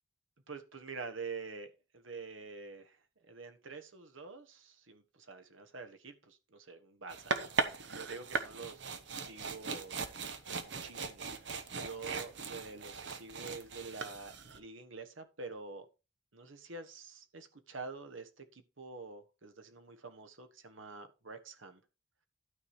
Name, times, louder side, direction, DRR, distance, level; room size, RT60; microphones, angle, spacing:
voice 1, 0.5-3.0 3.3-10.0 10.5-15.9 16.3-21.8, right 4 dB, 80° right, 1.4 m, -47 dB
sound 1, 7.1-14.6, right 4 dB, 65° right, 1.0 m, -39 dB
12.0 x 4.9 x 4.8 m
head